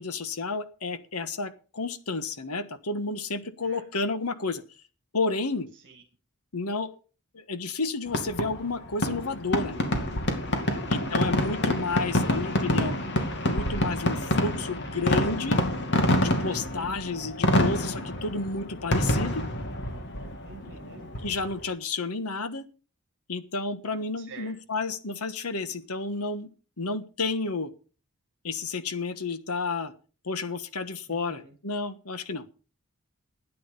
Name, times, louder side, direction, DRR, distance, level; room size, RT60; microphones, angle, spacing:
voice 1, 0.0-4.6 5.1-5.7 6.5-6.9 7.3-9.8 10.9-13.0 13.5-15.6 16.2-19.4 21.2-22.7 23.3-26.5 26.8-27.7 28.4-29.9 30.2-32.5, left 3 dB, 80° left, 12 dB, 1.4 m, -31 dB
Fireworks, 8.1-21.6, left 1 dB, 55° left, 2.5 m, -27 dB
voice 2, 10.6-11.2 16.6-17.3 20.4-21.1 24.2-24.5 31.1-31.5, right 3 dB, 55° right, 4 dB, 2.2 m, -49 dB
13.0 x 9.5 x 5.4 m, 0.37 s
head